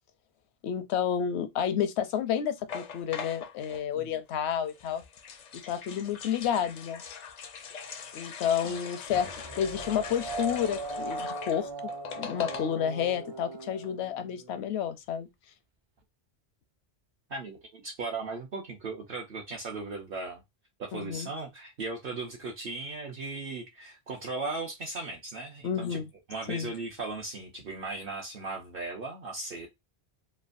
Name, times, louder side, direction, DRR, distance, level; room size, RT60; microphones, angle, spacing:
voice 1, 0.6-5.0 5.7-7.0 8.1-9.3 9.6-11.9 12.2-15.3 20.9-21.3 25.6-26.1 26.5-26.7, left 8 dB, 85° left, 0.8 m, -30 dB
sound 1, 2.7-3.8 4.7-13.0 13.3-13.4 13.6-13.9, left 6 dB, 55° left, 0.5 m, -42 dB
voice 2, 8.6-9.0 17.3-20.4 20.8-26.0 26.3-29.7, right 3 dB, 60° right, 0.9 m, -37 dB
sound 2, 9.1-14.6, right 3 dB, 45° right, 0.3 m, -39 dB
3.2 x 2.2 x 2.4 m
omnidirectional pair, 1.1 m